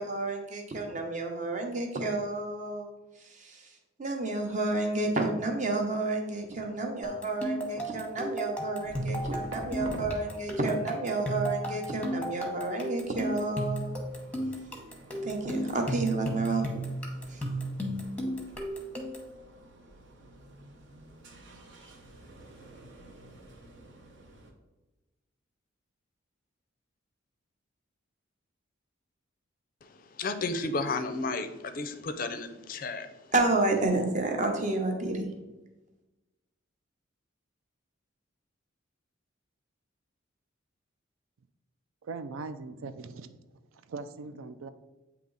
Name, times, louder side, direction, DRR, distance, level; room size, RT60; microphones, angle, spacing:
voice 1, 0.0-2.9 3.2-3.7 4.0-14.0 15.2-16.8 17.3-17.4 33.3-35.3, right 2 dB, 35° right, 0.8 m, -30 dB
sound 1, 7.0-19.3, right 1 dB, 5° left, 0.8 m, -34 dB
sound 2, 8.8-10.2 11.8-24.5, right 1 dB, 65° right, 0.9 m, -48 dB
voice 2, 29.8-33.3, left 3 dB, 40° left, 0.4 m, -33 dB
voice 3, 42.0-43.4 43.7-44.7, right 4 dB, 80° right, 0.4 m, -40 dB
8.6 x 2.9 x 3.9 m
head